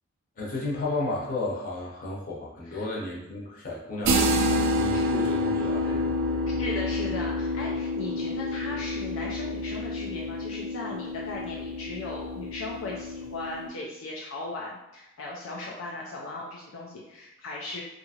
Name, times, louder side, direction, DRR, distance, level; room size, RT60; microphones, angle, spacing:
voice 1, 0.4-6.1, left 2 dB, 45° left, -5 dB, 0.8 m, -33 dB
sound 1, 4.0-13.7, left 1 dB, 65° right, 0.3 m, -28 dB
voice 2, 6.6-17.8, left 2 dB, 70° left, -3 dB, 0.4 m, -37 dB
2.7 x 2.5 x 2.7 m, 0.92 s
head